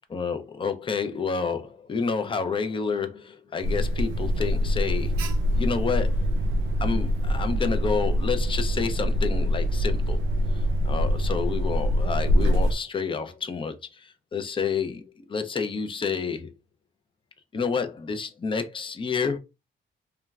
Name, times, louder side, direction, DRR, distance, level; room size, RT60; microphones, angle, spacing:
voice 1, 0.1-5.2 5.5-6.3 6.8-10.2 10.6-16.5 17.5-19.4, left 5 dB, 25° left, 0.5 m, -29 dB
Alarm, 3.6-12.7, equal, 85° right, 0.4 m, -24 dB
2.9 x 2.2 x 2.3 m
cardioid pair, 90°, 20 cm